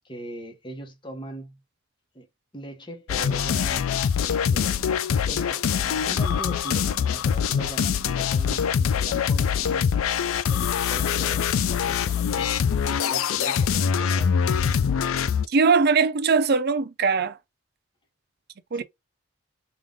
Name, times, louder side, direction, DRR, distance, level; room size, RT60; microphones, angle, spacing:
voice 1, 0.0-1.6 2.1-2.3 2.5-9.9 10.5-12.5 12.9-14.4 18.7-18.8, right 1 dB, 25° left, 1.0 m, -40 dB
sound 1, 3.1-15.5, left 7 dB, 80° left, 0.4 m, -24 dB
voice 2, 15.5-17.4 18.7-18.8, right 5 dB, 50° right, 0.5 m, -21 dB
3.7 x 2.4 x 3.7 m
head